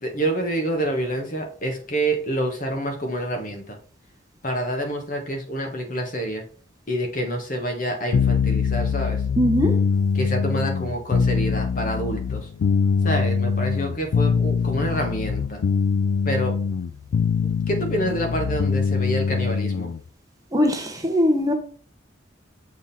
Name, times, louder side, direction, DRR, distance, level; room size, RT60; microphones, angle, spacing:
voice 1, 0.0-3.8 4.4-6.4 6.9-9.2 10.1-12.5 13.0-15.6 16.2-16.5 17.4-19.9, right 1 dB, 45° left, 1.4 m, -27 dB
sound 1, 8.1-20.0, left 5 dB, 85° left, 0.4 m, -23 dB
voice 2, 9.4-9.8 20.5-21.5, equal, 20° right, 0.9 m, -20 dB
7.3 x 3.7 x 4.2 m
head